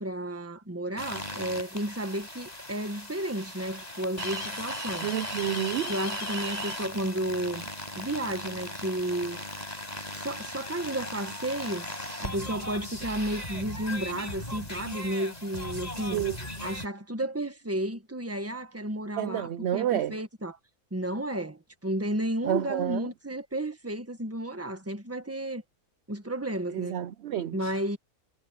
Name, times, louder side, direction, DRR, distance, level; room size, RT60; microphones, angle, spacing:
voice 1, 0.0-5.1 5.9-7.6 7.9-9.4 10.1-11.9 12.2-16.2 16.6-20.6 20.9-25.6 26.1-27.0 27.5-28.0, right 1 dB, 10° right, 1.4 m, -32 dB
sound 1, 1.0-16.9, left 1 dB, 25° left, 5.4 m, -37 dB
voice 2, 5.0-5.9 16.1-16.4 19.2-20.1 22.4-23.1 26.7-27.8, right 10 dB, 65° right, 0.7 m, -29 dB
omnidirectional pair, 1.6 m